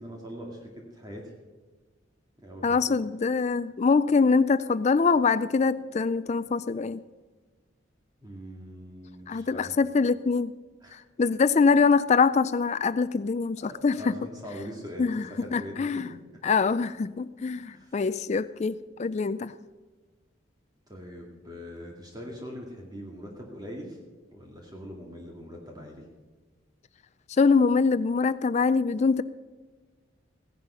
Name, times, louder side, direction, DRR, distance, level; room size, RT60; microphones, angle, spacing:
voice 1, 0.0-1.3 2.4-3.0 8.2-9.7 10.8-11.0 13.6-16.6 17.5-18.0 20.9-24.0 24.3-26.1, equal, 20° right, 0 dB, 2.1 m, -42 dB
voice 2, 2.6-7.0 9.3-10.5 10.9-14.1 15.0-16.1 16.4-19.5 27.4-29.2, left 4 dB, 35° left, 15 dB, 0.4 m, -24 dB
16.0 x 11.0 x 5.5 m, 1.3 s
head